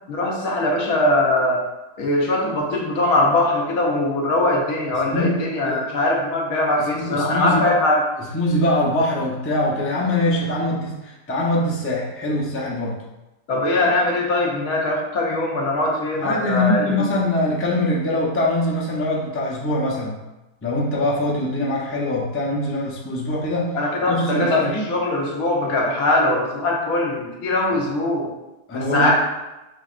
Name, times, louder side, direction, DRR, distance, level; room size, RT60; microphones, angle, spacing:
voice 1, 0.1-1.6 2.0-8.0 13.5-16.9 23.7-28.3 28.7-29.1, left 1 dB, 75° left, -2 dB, 1.3 m, -21 dB
voice 2, 4.9-5.8 6.9-7.7 8.2-13.0 16.2-20.2 20.6-23.8 24.0-24.9 28.7-29.1, left 1 dB, 15° left, -5 dB, 0.5 m, -23 dB
5.7 x 3.2 x 2.5 m, 1.0 s
omnidirectional pair, 1.6 m